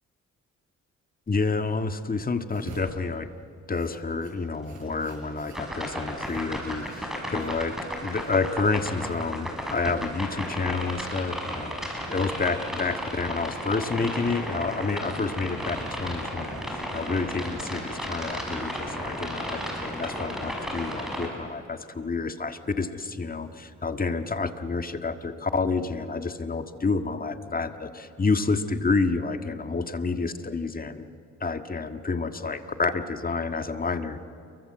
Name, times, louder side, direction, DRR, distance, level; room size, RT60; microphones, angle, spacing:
voice 1, 1.3-3.3 3.7-31.1 31.4-34.2, left 4 dB, 30° left, 8 dB, 1.8 m, -29 dB
sound 1, 2.5-10.3, right 4 dB, 75° right, 6.6 m, -50 dB
sound 2, 5.5-21.3, equal, ahead, 6.4 m, -34 dB
29.0 x 23.5 x 7.8 m, 2.5 s
cardioid pair, 85°, 30 cm